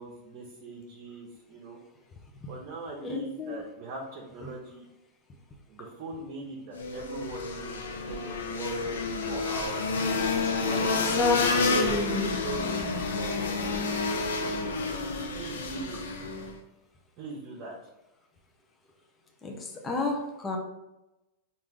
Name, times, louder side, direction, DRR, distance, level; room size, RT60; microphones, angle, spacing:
voice 1, 0.0-1.8 2.5-4.9 5.7-11.2 11.8-13.5 13.8-14.1 15.3-16.0 17.2-17.7, right 3 dB, 45° right, -2 dB, 0.9 m, -41 dB
voice 2, 3.0-3.6 4.4-4.5 10.7-12.3 19.4-20.6, left 2 dB, 20° left, 0 dB, 0.7 m, -31 dB
sound 1, 6.7-16.6, left 4 dB, 90° left, 0.6 m, -29 dB
4.5 x 2.6 x 3.6 m, 0.97 s
hypercardioid pair, 130°, 0 cm